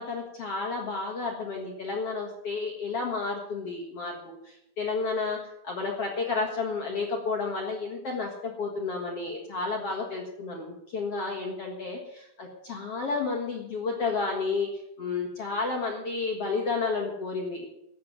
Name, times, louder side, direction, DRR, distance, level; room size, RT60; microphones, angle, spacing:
voice 1, 0.0-17.8, left 4 dB, 50° left, 0 dB, 2.0 m, -31 dB
13.5 x 7.8 x 9.1 m, 0.80 s
omnidirectional pair, 4.7 m